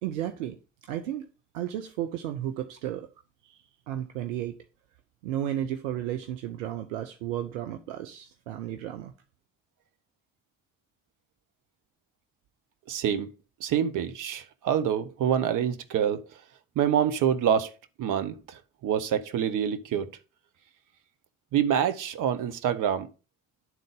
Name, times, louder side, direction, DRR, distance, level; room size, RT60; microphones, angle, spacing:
voice 1, 0.0-0.6 0.8-1.3 1.5-3.1 3.9-4.6 5.2-9.1, right 11 dB, 75° right, 0.7 m, -33 dB
voice 2, 12.9-13.3 13.6-16.2 16.7-17.7 18.0-20.1 21.5-23.1, right 9 dB, 55° right, 1.1 m, -26 dB
10.5 x 3.9 x 5.3 m
figure-of-eight pair, 50°, 37 cm